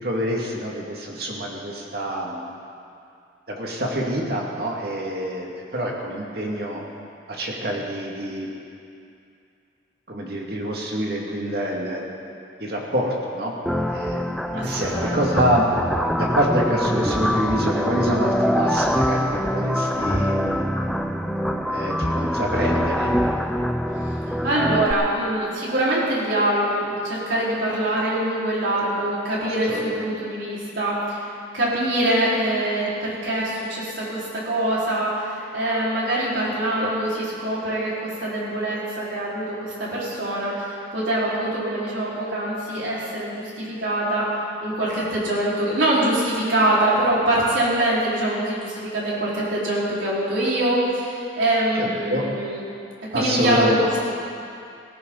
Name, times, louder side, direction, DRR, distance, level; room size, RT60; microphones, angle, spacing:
voice 1, 0.0-2.5 3.5-5.5 5.7-6.8 7.3-8.5 10.1-12.2 12.6-13.5 13.8-15.7 16.2-20.7 21.7-23.2 28.6-28.8 29.7-30.2 36.7-36.9 51.7-52.2 53.1-53.8, equal, 55° right, -2 dB, 2.3 m, -26 dB
sound 1, 13.7-24.9, equal, ahead, 0.4 m, -24 dB
voice 2, 14.5-15.2 24.4-31.2 31.5-44.3 44.6-52.6 53.1-54.0, right 1 dB, 85° right, -7 dB, 4.7 m, -24 dB
18.5 x 15.0 x 4.1 m, 2.5 s
head